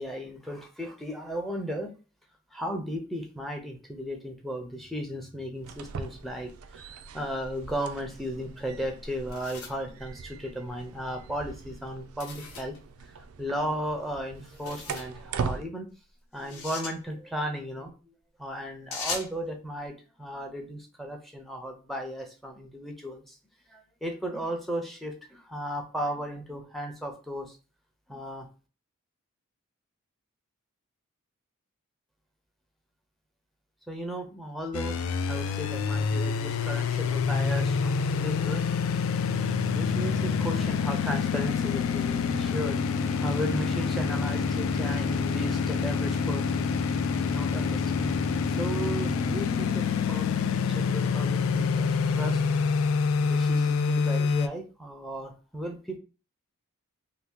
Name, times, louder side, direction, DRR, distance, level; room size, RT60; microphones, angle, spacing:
voice 1, 0.0-1.9 2.5-12.7 13.4-15.9 16.3-18.1 18.4-23.3 23.7-27.6 28.1-28.5 33.9-38.7 39.4-42.8 43.2-46.7 47.2-52.7 53.2-56.0, equal, ahead, 3 dB, 0.5 m, -35 dB
sound 1, 5.5-15.6, right 5 dB, 70° right, 0.4 m, -40 dB
sound 2, 9.0-10.8 12.2-12.8 14.4-15.1 16.4-17.0 18.9-19.4, left 4 dB, 80° left, 0.9 m, -39 dB
sound 3, 34.7-54.5, left 5 dB, 65° left, 0.3 m, -27 dB
2.7 x 2.6 x 3.6 m, 0.34 s
head